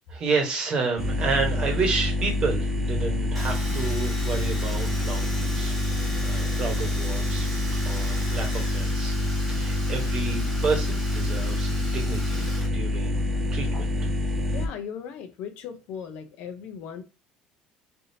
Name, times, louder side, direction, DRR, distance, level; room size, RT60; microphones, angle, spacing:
voice 1, 0.1-5.7 6.2-7.5 7.8-9.1 9.5-13.2 13.5-14.1, right 4 dB, 35° right, 1.1 m, -30 dB
sound 1, 1.0-14.7, left 1 dB, 15° right, 0.4 m, -26 dB
Domestic sounds home sounds, 3.3-12.7 12.9-13.8, equal, 5° left, 1.4 m, -38 dB
voice 2, 14.5-17.0, left 7 dB, 60° left, 0.6 m, -37 dB
3.4 x 2.6 x 2.7 m
cardioid pair, 165°, 3 cm